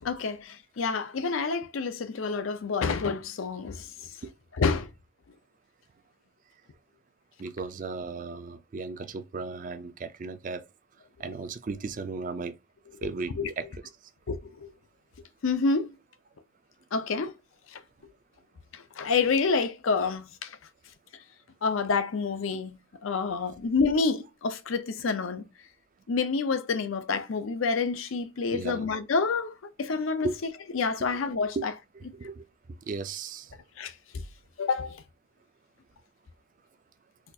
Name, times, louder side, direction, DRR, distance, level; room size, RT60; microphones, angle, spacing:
voice 1, 0.0-3.9 4.6-4.9 13.0-13.5 14.3-14.7 15.4-15.9 16.9-17.3 17.7-17.8 18.7-20.6 21.6-25.5 26.1-30.3 30.7-31.7 33.8-33.9 34.6-35.0, left 4 dB, 80° left, 0.5 m, -28 dB
voice 2, 7.4-10.7 11.2-12.6 13.0-13.7 28.5-28.9 30.2-30.4 31.0-31.1 31.6-31.7 31.9-32.4 32.9-33.5, right 4 dB, 40° right, 0.3 m, -35 dB
4.1 x 2.4 x 2.7 m
head